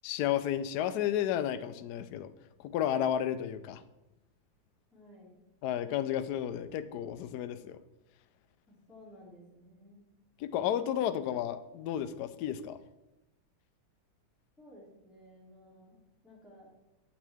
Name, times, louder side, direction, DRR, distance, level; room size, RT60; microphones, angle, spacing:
voice 1, 0.0-2.3 2.6-3.8 5.6-7.8 10.4-12.8, left 10 dB, 85° left, 11 dB, 0.8 m, -32 dB
voice 2, 4.9-5.4 8.7-10.0 14.6-16.7, left 1 dB, ahead, -7 dB, 2.7 m, -55 dB
8.7 x 8.4 x 3.5 m, 0.97 s
omnidirectional pair, 2.3 m